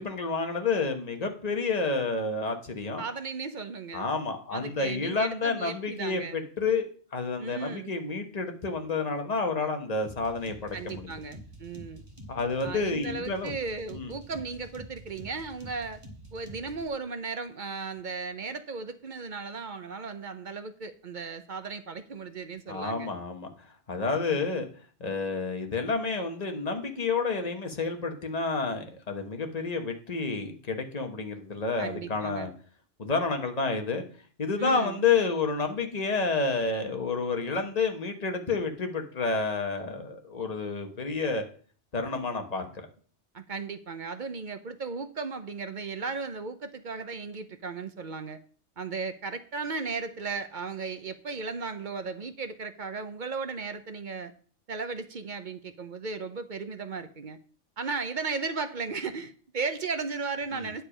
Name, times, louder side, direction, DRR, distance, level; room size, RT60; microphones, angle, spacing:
voice 1, 0.0-3.0 3.9-11.1 12.3-13.5 13.9-14.1 22.7-23.5 23.9-24.7 25.0-32.5 33.0-34.0 34.4-41.4 41.9-42.9 60.5-60.7, left 4 dB, 35° left, 4 dB, 1.2 m, -29 dB
voice 2, 3.0-4.1 4.5-6.4 7.4-7.9 10.7-12.0 12.6-16.0 16.3-23.1 24.1-24.4 31.8-32.5 34.6-35.0 43.3-48.4 48.8-54.3 54.7-57.4 57.8-60.8, right 4 dB, 50° right, 9 dB, 0.8 m, -36 dB
sound 1, 10.0-16.9, equal, 25° right, 2.0 m, -47 dB
9.9 x 6.8 x 5.0 m, 0.44 s
omnidirectional pair, 1.2 m